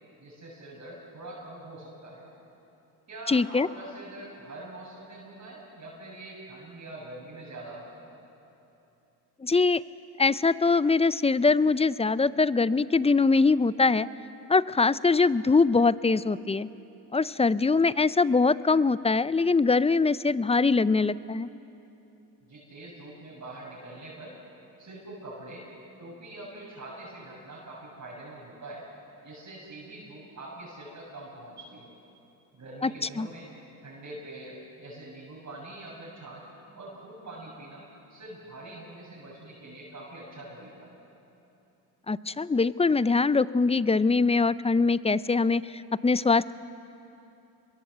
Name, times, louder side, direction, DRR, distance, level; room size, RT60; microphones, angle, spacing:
voice 1, 0.2-2.3 3.1-8.1 22.5-24.3 24.8-25.7 26.0-28.8 29.2-31.9 32.5-33.5 33.8-36.4 36.7-37.8 38.1-41.0, right 2 dB, 40° right, -5 dB, 7.3 m, -44 dB
voice 2, 3.3-3.7 9.4-9.8 10.2-14.1 14.5-16.7 17.1-21.5 32.8-33.3 42.1-46.5, left 4 dB, 15° left, 17 dB, 0.6 m, -23 dB
27.0 x 22.5 x 8.0 m, 3.0 s
supercardioid pair, 70°, 42 cm